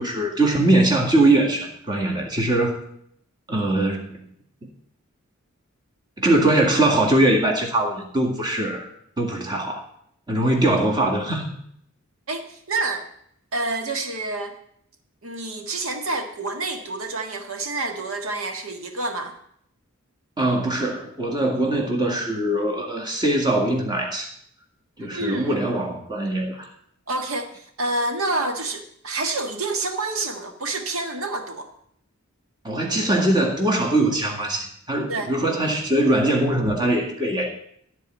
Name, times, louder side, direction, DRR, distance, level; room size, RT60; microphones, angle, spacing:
voice 1, 0.0-2.8 3.5-4.1 4.6-4.7 6.2-8.9 9.2-9.8 10.3-11.5 20.4-24.3 25.0-26.7 32.6-37.5, right 1 dB, 20° right, 1 dB, 2.0 m, -21 dB
voice 2, 12.3-13.1 13.5-14.6 15.2-19.4 25.1-25.6 27.1-31.7 35.1-35.3, right 2 dB, 85° right, 5 dB, 1.6 m, -28 dB
13.5 x 4.6 x 8.9 m, 0.69 s
head